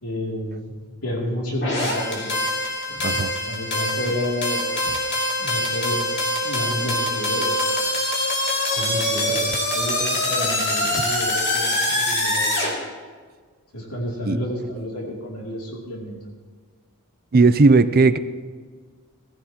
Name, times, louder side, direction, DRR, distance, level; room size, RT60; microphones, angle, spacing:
voice 1, 0.0-0.7 1.0-2.5 2.9-4.6 5.4-6.1 6.4-7.8 8.7-12.5 13.7-16.2, equal, 80° left, -2 dB, 2.8 m, -30 dB
sound 1, 1.6-12.7, left 1 dB, 50° left, 3.1 m, -24 dB
voice 2, 3.0-3.3 10.9-11.0 14.2-14.4 17.3-18.2, right 3 dB, 45° right, 12 dB, 0.5 m, -16 dB
19.0 x 15.0 x 2.9 m, 1.5 s
head